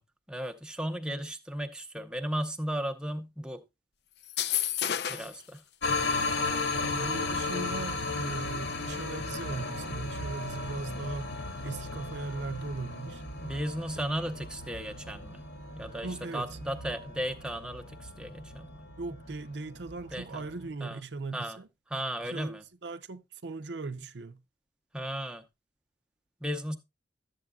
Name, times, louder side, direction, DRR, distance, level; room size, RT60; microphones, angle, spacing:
voice 1, 0.3-3.6 5.1-5.6 13.4-15.4 15.7-16.1 16.3-18.8 20.1-20.5 20.8-21.0 21.3-21.6 21.9-22.6 24.9-25.4 26.4-26.8, equal, 5° right, 0.7 m, -35 dB
sound 1, 4.2-5.4, left 10 dB, 65° left, 0.6 m, -30 dB
sound 2, 5.8-20.7, left 3 dB, 85° left, 1.6 m, -35 dB
voice 2, 6.8-11.4 11.6-13.2 16.0-16.6 19.0-21.7 22.2-24.4, right 3 dB, 75° right, 0.6 m, -38 dB
12.0 x 7.9 x 2.3 m
head